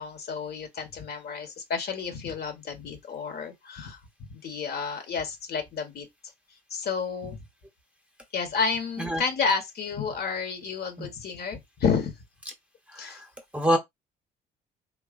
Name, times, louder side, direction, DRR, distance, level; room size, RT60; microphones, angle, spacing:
voice 1, 0.0-6.1 6.7-7.4 8.3-12.2 13.0-13.2, left 5 dB, 50° left, 1.1 m, -31 dB
voice 2, 12.9-13.3 13.5-13.8, equal, 5° right, 0.9 m, -26 dB
3.1 x 2.3 x 2.5 m
hypercardioid pair, 55°, 21 cm